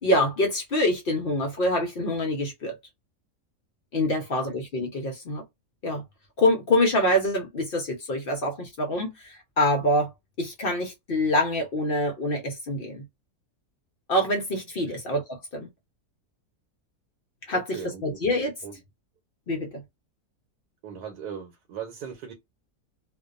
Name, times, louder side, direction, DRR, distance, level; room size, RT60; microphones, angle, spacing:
voice 1, 0.0-2.8 3.9-5.4 5.8-6.0 6.4-10.1 10.4-13.1 14.1-15.7 17.5-18.5 19.5-19.8, left 1 dB, 60° left, 0.6 m, -25 dB
voice 2, 17.5-18.2 18.6-18.8 20.8-22.3, right 8 dB, 90° right, 1.2 m, -38 dB
2.5 x 2.2 x 2.4 m
omnidirectional pair, 1.7 m